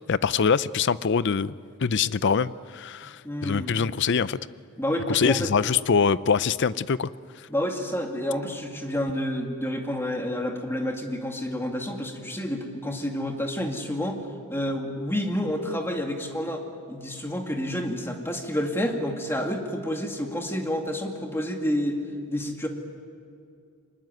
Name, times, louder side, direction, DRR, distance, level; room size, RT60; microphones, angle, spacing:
voice 1, 0.1-1.5 1.8-4.4 5.1-7.1, left 6 dB, 55° left, 17 dB, 0.5 m, -24 dB
voice 2, 3.0-3.7 4.8-5.5 7.5-14.2 14.5-16.6 16.9-22.0 22.3-22.7, equal, 10° left, 3 dB, 2.2 m, -29 dB
24.5 x 20.5 x 9.4 m, 2.4 s
head